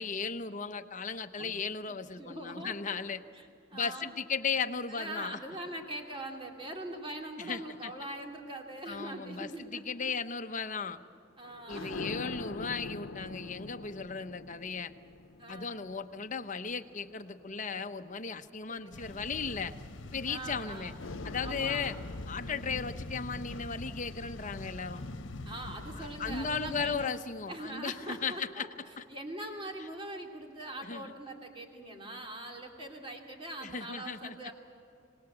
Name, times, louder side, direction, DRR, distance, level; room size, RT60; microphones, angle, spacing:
voice 1, 0.0-3.2 3.7-5.4 7.4-7.9 8.9-11.0 11.7-14.9 15.5-19.7 20.1-20.9 21.2-22.0 22.3-25.0 25.9-28.7 29.0-29.1 30.8-31.1 33.6-34.5, left 5 dB, 40° left, 8 dB, 0.9 m, -36 dB
voice 2, 1.9-3.0 3.3-4.1 4.9-10.1 11.4-12.1 15.4-15.8 18.7-19.2 20.3-21.1 21.4-21.9 22.4-22.8 25.4-27.1 27.5-28.7 29.1-34.5, right 1 dB, 25° right, 2 dB, 2.9 m, -42 dB
sound 1, 11.4-18.0 18.8-20.6 21.0-26.3 27.3-28.4, left 3 dB, 85° left, 0.9 m, -46 dB
sound 2, 18.9-27.1, left 2 dB, 65° left, 1.2 m, -43 dB
26.0 x 19.0 x 8.0 m, 2.6 s
head